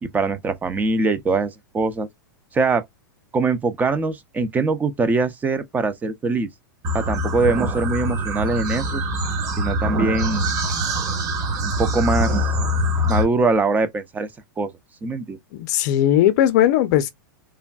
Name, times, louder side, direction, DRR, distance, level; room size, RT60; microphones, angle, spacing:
voice 1, 0.0-2.1 2.5-2.8 3.3-6.5 6.9-9.0 9.6-10.5 11.6-12.5 13.1-14.3 14.6-14.7 15.0-15.4, right 3 dB, 15° right, 0.4 m, -22 dB
sound 1, 6.8-13.2, equal, 30° right, 1.0 m, -23 dB
voice 2, 15.5-17.1, left 12 dB, 55° left, 0.6 m, -18 dB
3.3 x 2.1 x 2.3 m
hypercardioid pair, 130°, 11 cm